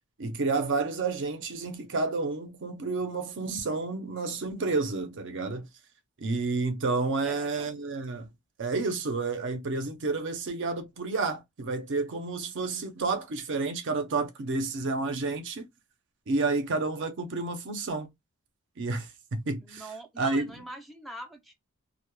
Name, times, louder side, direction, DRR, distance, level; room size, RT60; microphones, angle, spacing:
voice 1, 0.2-5.7 6.2-8.3 8.6-15.6 16.3-18.1 18.8-19.1 19.4-19.9 20.2-20.4, right 3 dB, 55° right, 0.5 m, -30 dB
voice 2, 7.2-7.7 19.6-21.5, right 1 dB, ahead, 0.4 m, -43 dB
2.2 x 2.0 x 3.0 m
head